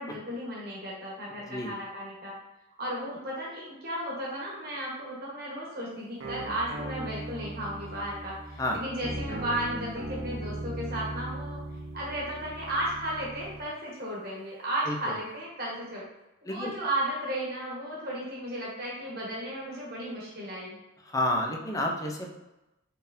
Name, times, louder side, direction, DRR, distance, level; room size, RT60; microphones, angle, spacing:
voice 1, 0.0-2.3 2.8-11.6 11.9-16.0 16.4-20.8, right 1 dB, 50° right, -5 dB, 1.2 m, -34 dB
sound 1, 6.2-13.7, right 1 dB, 70° right, 0.7 m, -38 dB
voice 2, 21.0-22.3, left 1 dB, 15° left, 1 dB, 0.5 m, -30 dB
4.3 x 3.5 x 2.6 m, 0.96 s
head